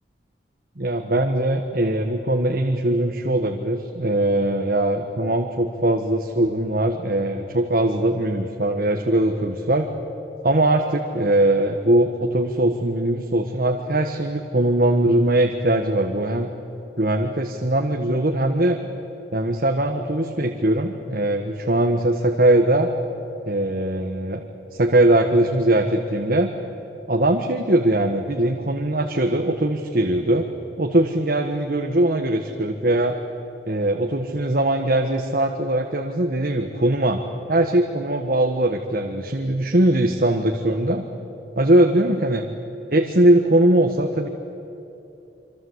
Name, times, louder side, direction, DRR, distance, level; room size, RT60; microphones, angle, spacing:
voice 1, 0.8-9.9 10.4-16.5 17.0-18.8 19.3-22.9 23.5-24.4 24.7-26.5 27.1-30.5 30.8-33.2 33.7-37.2 37.5-41.0 41.6-42.4 42.9-44.3, right 1 dB, 55° right, 3 dB, 1.5 m, -21 dB
27.0 x 25.5 x 8.1 m, 2.9 s
head